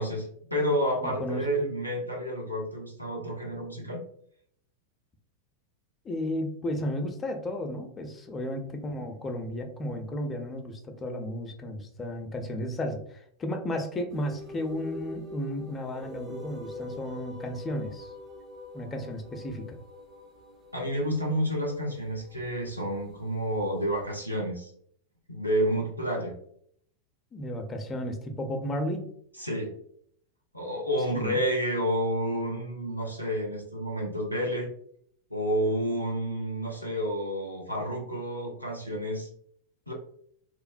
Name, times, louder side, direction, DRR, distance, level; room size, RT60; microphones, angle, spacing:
voice 1, 0.0-4.0 20.7-24.7 25.3-26.4 29.4-29.7 30.5-34.7 35.3-39.3 39.9-40.0, equal, 90° right, -1 dB, 0.6 m, -30 dB
voice 2, 1.0-1.5 6.0-18.1 18.7-19.8 27.3-29.1 31.1-31.4, left 1 dB, 20° left, 5 dB, 0.4 m, -33 dB
sound 1, 14.1-24.1, left 2 dB, 35° right, 0.5 m, -45 dB
2.9 x 2.1 x 2.5 m, 0.67 s
figure-of-eight pair, 90°, 0 cm